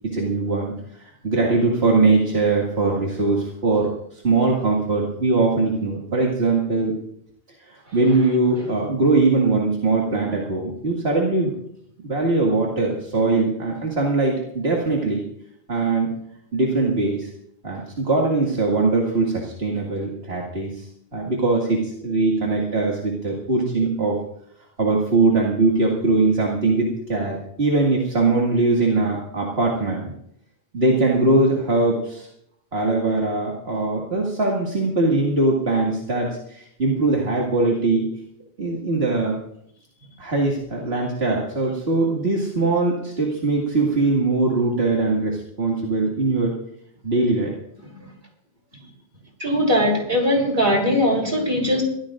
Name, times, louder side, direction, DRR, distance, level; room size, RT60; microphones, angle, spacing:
voice 1, 0.0-6.9 7.6-11.5 12.0-15.2 15.7-16.1 16.5-17.3 17.6-24.2 24.8-30.1 30.7-32.3 32.7-38.1 38.6-39.4 40.2-46.6 47.0-47.5, right 3 dB, 70° right, -3 dB, 2.4 m, -21 dB
voice 2, 49.4-51.8, equal, 55° right, 0 dB, 4.0 m, -20 dB
23.5 x 16.0 x 2.6 m, 0.73 s
omnidirectional pair, 1.1 m